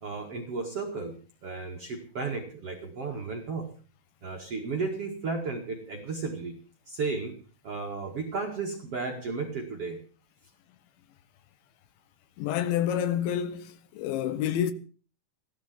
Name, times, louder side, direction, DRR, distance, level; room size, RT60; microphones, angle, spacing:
voice 1, 0.0-1.1 1.4-3.7 4.2-6.6 6.9-7.4 7.6-10.0, right 4 dB, 50° right, 1.9 m, -34 dB
voice 2, 12.4-14.7, left 10 dB, 75° left, 3.3 m, -28 dB
16.5 x 12.0 x 6.1 m
omnidirectional pair, 5.6 m